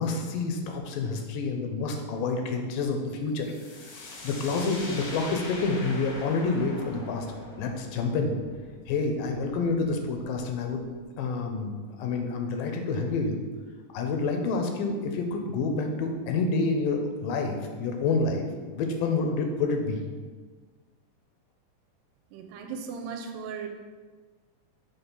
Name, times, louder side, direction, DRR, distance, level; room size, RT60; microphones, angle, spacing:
voice 1, 0.0-3.5 3.9-7.3 7.6-8.4 8.9-10.9 11.2-13.5 13.9-18.5 18.7-20.0, left 3 dB, 85° left, 4 dB, 2.3 m, -28 dB
sound 1, 3.4-11.0, left 2 dB, 60° left, 1.4 m, -43 dB
voice 2, 22.3-23.7, right 6 dB, 85° right, 4 dB, 2.2 m, -37 dB
6.1 x 3.6 x 5.4 m, 1.4 s
omnidirectional pair, 4.0 m